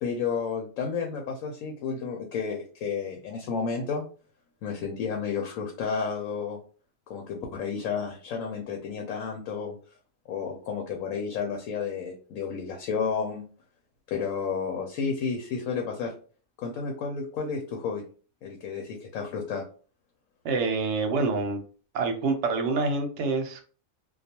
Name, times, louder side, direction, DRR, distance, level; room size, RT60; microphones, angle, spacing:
voice 1, 0.0-4.1 4.6-6.6 7.1-9.8 10.3-13.4 14.1-16.1 16.6-18.0 18.4-19.6, left 5 dB, 80° left, 2 dB, 1.0 m, -31 dB
voice 2, 20.4-21.6 21.9-23.6, right 3 dB, 65° right, 4 dB, 0.8 m, -26 dB
2.3 x 2.3 x 2.8 m, 0.39 s
omnidirectional pair, 1.4 m